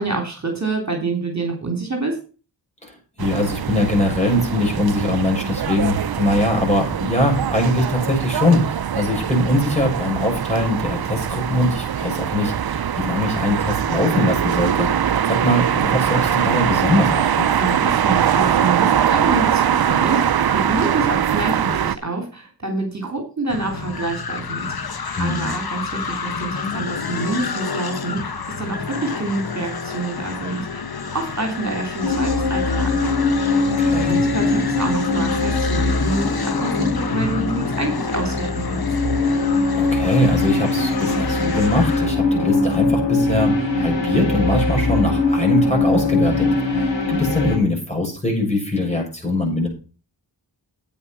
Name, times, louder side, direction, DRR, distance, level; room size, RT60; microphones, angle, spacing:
voice 1, 0.0-2.2 17.6-30.8 31.1-33.2 34.1-38.8, right 3 dB, 40° right, 3 dB, 3.3 m, -27 dB
voice 2, 2.8-14.9 15.2-17.5 25.1-25.5 33.8-34.1 39.8-49.7, left 1 dB, 15° left, 0 dB, 6.8 m, -22 dB
sound 1, 3.2-22.0, right 9 dB, 55° right, 0.6 m, -22 dB
sound 2, 23.5-42.1, left 5 dB, 55° left, 1.2 m, -30 dB
sound 3, 32.0-47.6, left 3 dB, 80° left, 3.5 m, -21 dB
9.3 x 8.6 x 6.0 m, 0.36 s
cardioid pair, 50°, 44 cm